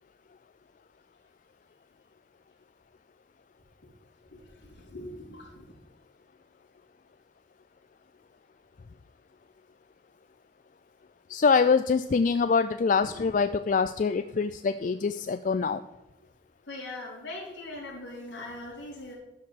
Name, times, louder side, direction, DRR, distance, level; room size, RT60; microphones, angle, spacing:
voice 1, 4.3-5.6 13.0-13.2 15.7-15.8 16.7-19.1, left 2 dB, 75° left, -4 dB, 4.2 m, -41 dB
voice 2, 11.3-15.8, left 5 dB, 40° left, 11 dB, 0.3 m, -24 dB
12.0 x 5.3 x 6.0 m, 1.0 s
head